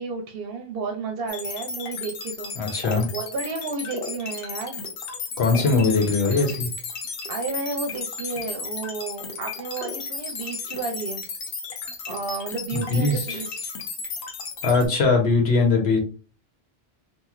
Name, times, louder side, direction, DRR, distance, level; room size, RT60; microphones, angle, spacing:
voice 1, 0.0-2.8 3.1-4.8 7.3-11.2 12.1-13.7, right 4 dB, 70° right, 3 dB, 0.7 m, -32 dB
sound 1, 1.3-14.9, left 5 dB, 70° left, 0.9 m, -34 dB
voice 2, 2.6-3.1 5.4-6.7 12.7-13.4 14.6-16.0, left 3 dB, 85° left, 2 dB, 1.1 m, -21 dB
sound 2, 2.8-4.6 4.9-6.4 7.2-7.3 7.5-7.8 8.1-8.6 8.8-9.1 9.8-10.7 11.0-11.9 12.2-12.3 12.7-13.0 13.4-13.8, left 2 dB, 10° left, 0.3 m, -40 dB
3.0 x 2.5 x 2.4 m, 0.37 s
omnidirectional pair, 1.0 m